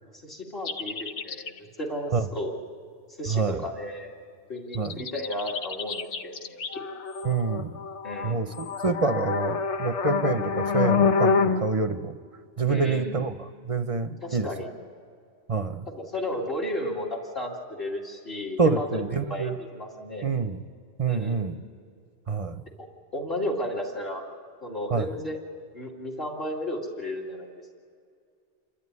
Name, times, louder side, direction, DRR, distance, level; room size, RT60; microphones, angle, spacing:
voice 1, 0.0-2.5 3.2-4.1 4.5-6.8 8.0-8.4 12.7-13.3 14.2-14.7 15.9-19.0 19.3-20.3 21.1-21.6 22.8-22.9 23.1-24.2 24.6-25.4 25.7-27.5, left 1 dB, 55° left, -2 dB, 2.7 m, -33 dB
sound 1, 0.7-1.6 4.7-11.6, left 5 dB, 80° left, 1.2 m, -27 dB
voice 2, 3.3-3.6 4.7-5.0 7.2-7.7 8.2-12.2 12.6-13.3 13.7-14.5 15.5-15.9 18.6-19.5 20.2-20.6 21.0-21.6 22.3-22.6 24.9-25.1, right 4 dB, 35° right, 9 dB, 0.7 m, -26 dB
27.5 x 12.5 x 9.6 m, 2.2 s
omnidirectional pair, 1.2 m